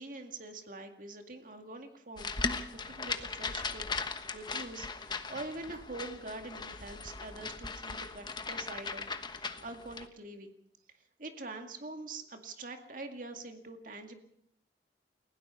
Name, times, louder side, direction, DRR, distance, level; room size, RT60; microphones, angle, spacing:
voice 1, 0.0-3.9 4.3-10.5 11.2-14.2, right 2 dB, 50° right, 5 dB, 2.2 m, -45 dB
sound 1, 2.2-10.1, left 4 dB, 25° left, 1.2 m, -38 dB
30.0 x 16.5 x 5.7 m, 0.71 s
head